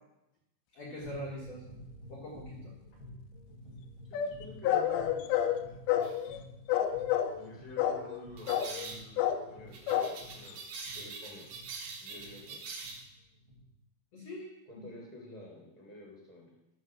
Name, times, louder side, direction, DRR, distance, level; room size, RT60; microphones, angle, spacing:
voice 1, 0.7-1.6 2.1-2.7 14.1-14.9, equal, 60° left, -3 dB, 1.7 m, -43 dB
sound 1, 1.0-13.6, left 1 dB, 45° right, 4.7 m, -51 dB
sound 2, 4.1-6.4 6.7-7.5 7.8-8.2 8.5-8.9 9.2-9.5 9.9-10.2 10.5-10.6 10.8-10.9, left 10 dB, 80° left, 2.2 m, -30 dB
voice 2, 4.1-5.6 7.3-10.6 10.9-11.6 12.0-12.8 14.7-16.5, left 1 dB, 10° right, -3 dB, 2.7 m, -50 dB
sound 3, 6.0-6.2 8.4-9.0 9.7-13.0, right 4 dB, 60° right, 2.2 m, -44 dB
13.5 x 4.5 x 6.3 m, 0.93 s
omnidirectional pair, 4.9 m